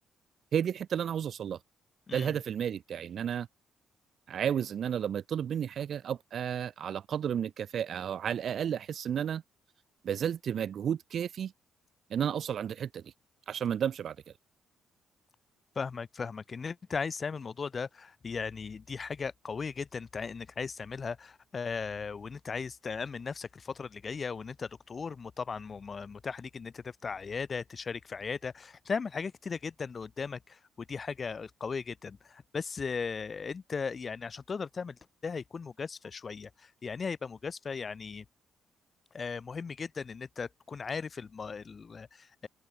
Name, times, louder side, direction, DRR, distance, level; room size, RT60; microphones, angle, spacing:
voice 1, 0.5-1.6 2.1-3.5 4.3-9.4 10.0-11.5 12.1-13.1 13.5-14.2, right 9 dB, 60° right, 0.5 m, -32 dB
voice 2, 2.1-2.4 15.7-38.3 39.1-42.5, left 5 dB, 40° left, 2.5 m, -37 dB
cardioid pair, 90°, 0 cm